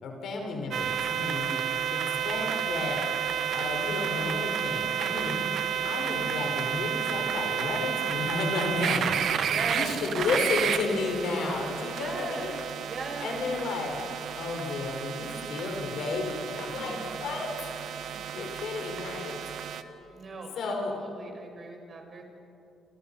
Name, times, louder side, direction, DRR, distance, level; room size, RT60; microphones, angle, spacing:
voice 1, 0.0-1.6 1.9-2.0 2.2-3.0 3.5-5.4 5.8-12.5 13.2-14.0 14.4-17.5 18.3-19.3 20.6-20.9, left 3 dB, 75° left, 2 dB, 5.3 m, -32 dB
sound 1, 0.7-19.8, right 8 dB, 70° right, 1.3 m, -31 dB
voice 2, 5.2-5.5 9.4-10.0 12.0-13.5 16.7-17.4 18.1-18.5 20.1-22.2, right 3 dB, 45° right, 3 dB, 5.6 m, -40 dB
29.0 x 26.5 x 5.7 m, 2.7 s
supercardioid pair, 70°, 0 cm